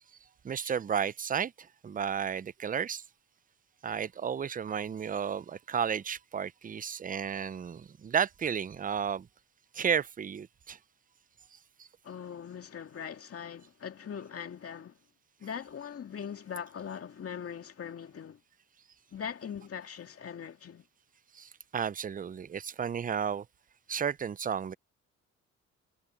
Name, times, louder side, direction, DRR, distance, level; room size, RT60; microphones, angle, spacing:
voice 1, 0.4-3.0 3.8-9.3 9.7-10.8 21.3-23.4 23.9-24.7, right 7 dB, 30° right, 0.5 m, -33 dB
voice 2, 12.0-15.0 15.4-18.4 19.1-20.8, left 7 dB, 50° left, 2.2 m, -41 dB
cardioid pair, 75°, 31 cm